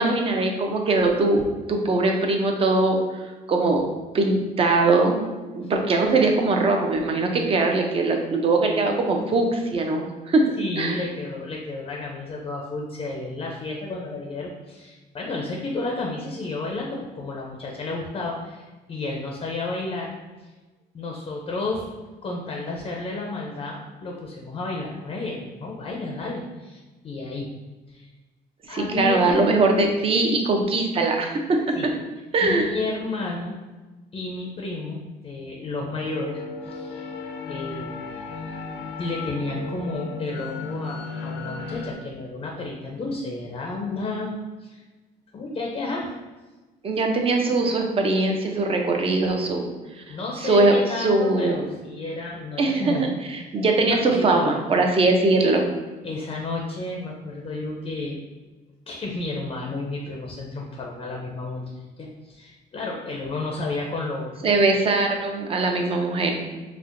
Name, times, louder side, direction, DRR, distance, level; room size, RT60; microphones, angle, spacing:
voice 1, 0.0-3.0 3.5-3.9 4.1-5.3 5.6-10.5 10.8-11.0 28.7-31.9 32.3-32.7 46.8-49.7 50.4-51.6 52.6-53.0 53.3-55.7 64.4-66.4, right 2 dB, 35° right, 2 dB, 0.5 m, -21 dB
voice 2, 10.6-20.1 20.4-20.5 20.9-21.9 22.2-27.5 27.9-28.1 28.7-29.6 31.8-31.9 32.4-33.6 34.1-37.1 37.5-37.9 39.0-44.8 45.3-46.1 50.1-53.1 53.9-54.6 56.0-58.2 58.9-64.5, left 2 dB, 30° left, -1 dB, 0.5 m, -31 dB
sound 1, 35.6-41.9, left 4 dB, 85° left, 0.4 m, -35 dB
4.3 x 2.1 x 2.5 m, 1.2 s
cardioid pair, 110°, 17 cm